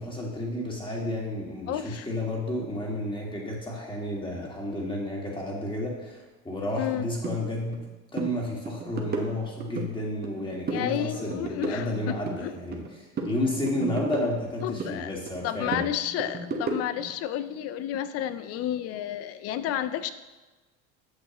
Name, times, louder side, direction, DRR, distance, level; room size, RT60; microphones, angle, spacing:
voice 1, 0.0-7.8 8.1-15.9, left 1 dB, 15° left, -2 dB, 2.2 m, -31 dB
voice 2, 1.7-2.1 6.8-7.1 10.7-11.9 12.4-12.5 14.6-15.2 15.4-20.1, left 11 dB, 55° left, 13 dB, 0.6 m, -31 dB
sound 1, 7.2-7.4 7.7-7.9 8.1-8.3 8.7-9.9 10.2-10.9 11.1-12.9 13.2-14.9 15.3-17.1, right 3 dB, 35° right, 1.2 m, -33 dB
8.6 x 6.3 x 3.0 m, 1.2 s
supercardioid pair, 90°, 30 cm